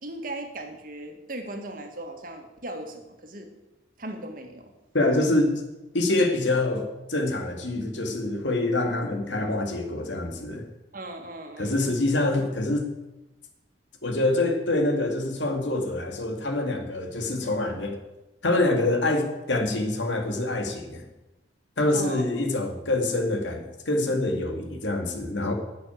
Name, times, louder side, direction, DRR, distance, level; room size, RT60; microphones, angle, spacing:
voice 1, 0.0-3.5 4.0-4.7 10.9-11.9 21.9-22.3, right 1 dB, 50° right, 4 dB, 2.0 m, -37 dB
voice 2, 4.9-5.6 5.9-10.6 11.6-12.9 14.0-18.0 18.4-21.1 21.8-25.5, left 2 dB, 80° left, 4 dB, 2.2 m, -25 dB
12.0 x 6.8 x 9.3 m, 1.0 s
head